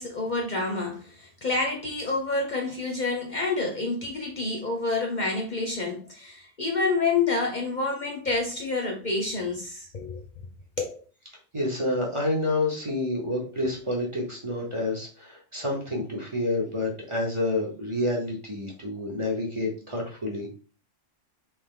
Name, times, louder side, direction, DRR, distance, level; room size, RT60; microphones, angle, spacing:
voice 1, 0.0-10.2 10.8-11.0, left 3 dB, 45° left, 0.7 m, -28 dB
voice 2, 11.5-20.5, left 2 dB, 30° right, 0.9 m, -28 dB
3.3 x 3.0 x 3.7 m
omnidirectional pair, 1.2 m